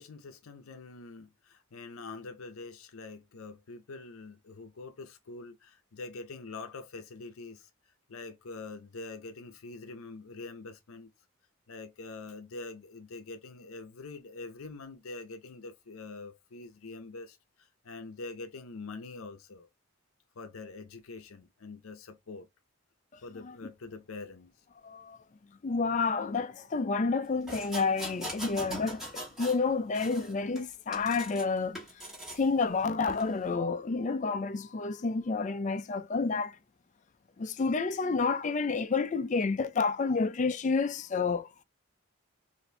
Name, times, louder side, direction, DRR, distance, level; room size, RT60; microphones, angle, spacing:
voice 1, 0.0-7.7 8.1-11.1 11.7-19.7 20.4-22.5 23.2-24.6, left 3 dB, 80° left, 0.6 m, -44 dB
voice 2, 24.8-25.2 25.6-31.8 32.3-36.6 37.4-41.6, left 4 dB, 35° left, 0.4 m, -30 dB
sound 1, 27.5-29.6 29.9-31.4 31.7-32.4 33.1-33.2, right 1 dB, ahead, 1.5 m, -41 dB
4.2 x 2.6 x 3.2 m
head